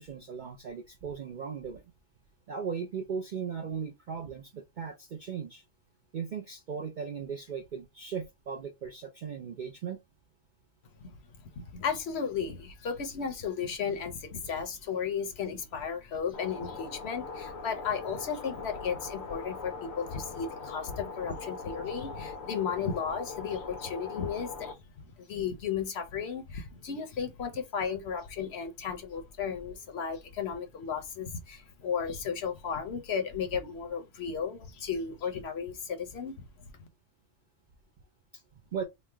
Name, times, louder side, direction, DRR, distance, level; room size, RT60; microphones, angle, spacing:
voice 1, 0.0-1.8 2.5-5.6 6.1-10.0 38.3-38.4 38.7-38.8, right 6 dB, 60° right, 0.5 m, -37 dB
voice 2, 11.0-24.8 25.0-36.5, left 6 dB, 60° left, 0.8 m, -34 dB
sound 1, 16.3-24.7, left 4 dB, 90° left, 1.1 m, -41 dB
3.1 x 2.1 x 3.3 m
omnidirectional pair, 1.4 m